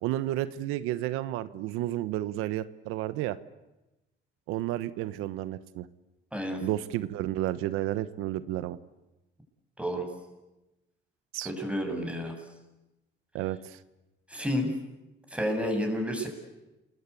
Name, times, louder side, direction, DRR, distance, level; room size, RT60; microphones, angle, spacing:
voice 1, 0.0-3.4 4.5-5.9 6.6-8.8 11.3-11.5 13.3-13.8, right 14 dB, 90° right, 14 dB, 1.1 m, -31 dB
voice 2, 11.4-12.3 14.3-14.7 15.3-16.3, equal, 5° right, 3 dB, 7.6 m, -30 dB
29.0 x 20.5 x 8.4 m, 1.0 s
cardioid pair, 95°, 21 cm